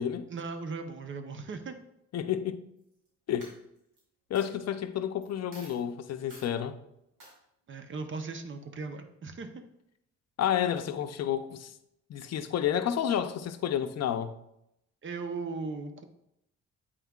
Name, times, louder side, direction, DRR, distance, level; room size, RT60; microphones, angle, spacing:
voice 1, 0.3-1.8 7.7-9.6 15.0-16.0, right 4 dB, 40° right, 0.7 m, -38 dB
voice 2, 2.1-2.6 3.3-3.5 4.3-6.8 10.4-11.7 12.1-14.4, left 9 dB, 60° left, 0.6 m, -30 dB
Coin (dropping), 2.8-3.1 3.4-4.0 4.3-4.5 5.2-5.3 5.5-5.8 6.3-6.5 7.2-7.3, right 1 dB, 85° right, 2.5 m, -51 dB
8.1 x 5.5 x 2.4 m
cardioid pair, 90°, 30 cm